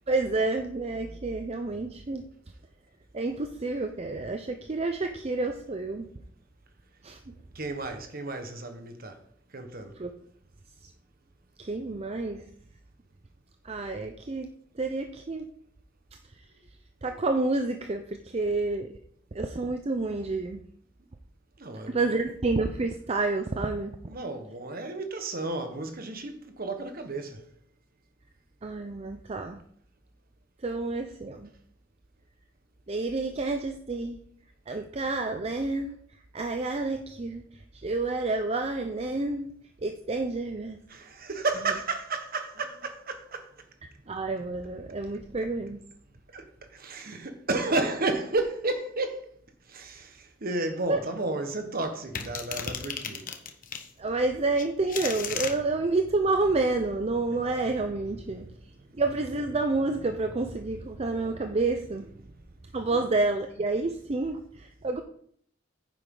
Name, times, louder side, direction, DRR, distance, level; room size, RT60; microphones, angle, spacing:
voice 1, 0.1-2.2 3.1-6.1 7.0-7.2 10.0-10.1 11.6-12.5 13.6-14.5 14.8-15.5 17.0-18.9 19.3-20.6 21.9-24.0 28.6-29.6 30.6-31.5 32.9-34.2 34.7-36.0 36.3-39.5 39.8-40.8 44.1-45.8 50.9-51.0 54.0-58.5 59.0-62.1 62.7-65.0, right 3 dB, 30° right, 0.6 m, -29 dB
voice 2, 7.5-9.2 9.5-9.9 21.6-22.0 24.1-27.4 40.9-43.5 46.3-46.4 46.7-49.2 49.7-53.2, right 2 dB, 50° right, 1.4 m, -32 dB
sound 1, 52.2-53.9 54.6-55.5, left 7 dB, 45° left, 1.1 m, -34 dB
9.9 x 7.6 x 3.9 m
head